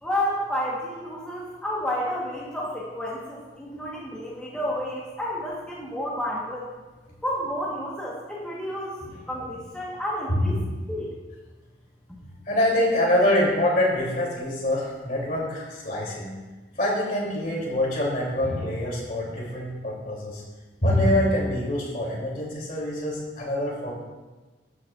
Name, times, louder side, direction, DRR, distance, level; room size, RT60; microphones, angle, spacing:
voice 1, 0.0-6.6 7.2-9.0 9.3-10.6 10.9-11.1, equal, 5° left, -7 dB, 1.3 m, -30 dB
voice 2, 10.3-10.7 12.4-16.3 16.7-20.4 20.8-23.9, left 1 dB, 50° left, -4 dB, 3.1 m, -25 dB
13.5 x 8.3 x 2.5 m, 1.2 s
head